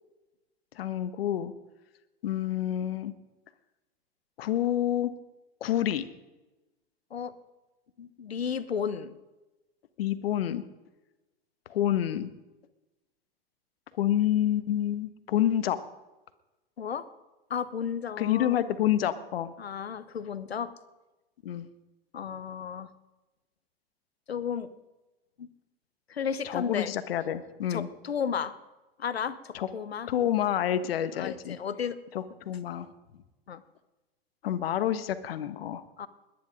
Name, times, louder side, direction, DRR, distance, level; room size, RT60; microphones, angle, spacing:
voice 1, 0.7-1.5 2.2-3.1 4.4-5.1 5.6-6.1 10.0-10.6 11.7-12.3 14.0-15.8 18.2-19.5 21.4-21.7 26.4-27.9 29.5-29.7 30.1-31.6 32.1-32.9 34.4-35.8, left 11 dB, 70° left, 13 dB, 1.3 m, -28 dB
voice 2, 8.0-9.2 16.8-17.1 17.5-18.6 19.6-20.7 22.1-22.9 24.3-24.7 25.4-25.5 26.1-26.9 27.7-28.5 29.0-30.1 31.1-32.0 33.5-33.6 36.0-36.1, left 7 dB, 90° left, 15 dB, 1.0 m, -33 dB
20.5 x 10.5 x 5.1 m, 1.1 s
hypercardioid pair, 95°, 30 cm